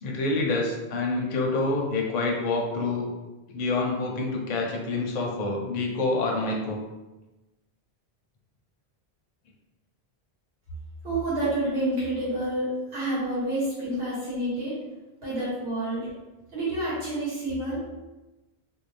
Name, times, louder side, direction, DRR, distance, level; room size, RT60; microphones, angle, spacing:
voice 1, 0.0-3.1 3.5-6.8 15.3-15.4, left 2 dB, 50° left, 0 dB, 0.6 m, -27 dB
voice 2, 11.0-14.8 15.2-16.1 16.5-17.9, right 1 dB, 75° right, -10 dB, 1.3 m, -28 dB
2.6 x 2.2 x 3.1 m, 1.1 s
omnidirectional pair, 1.0 m